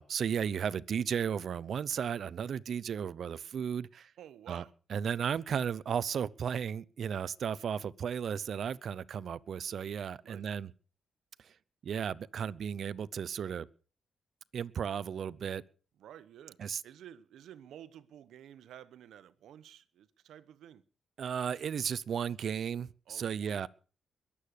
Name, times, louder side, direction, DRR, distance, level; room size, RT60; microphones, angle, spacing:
voice 1, 0.0-4.1 4.5-4.6 4.9-10.7 11.4-11.5 11.8-13.7 14.5-15.6 16.6-16.8 21.2-23.7, right 7 dB, 60° right, 0.7 m, -34 dB
voice 2, 4.2-4.7 10.2-10.4 16.0-16.6 16.8-20.8 23.1-23.7, right 10 dB, 90° right, 1.1 m, -52 dB
21.5 x 8.6 x 6.6 m
cardioid pair, 110°, 0 cm